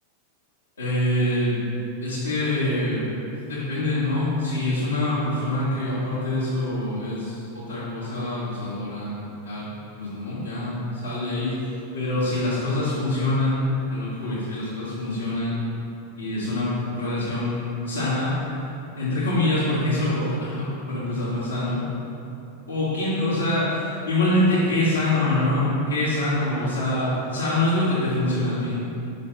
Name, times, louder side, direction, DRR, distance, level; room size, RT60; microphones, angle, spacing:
voice 1, 0.8-1.6 2.0-3.1 3.4-15.6 16.2-18.4 18.9-21.9 22.7-28.8, left 1 dB, 70° left, -11 dB, 1.3 m, -25 dB
5.6 x 3.2 x 5.6 m, 2.8 s
figure-of-eight pair, 90°, 0 cm